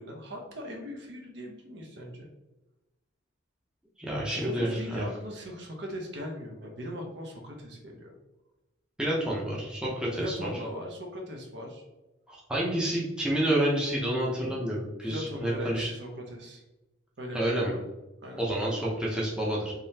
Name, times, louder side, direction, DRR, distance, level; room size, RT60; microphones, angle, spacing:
voice 1, 0.0-2.3 4.3-8.1 10.2-11.8 15.0-16.6 17.2-17.8 18.2-18.4, equal, 60° right, 1 dB, 0.7 m, -39 dB
voice 2, 4.0-5.1 9.0-10.5 12.3-15.9 17.3-17.7 18.4-19.7, right 1 dB, 5° right, -5 dB, 0.7 m, -29 dB
3.8 x 3.1 x 2.8 m, 1.0 s
head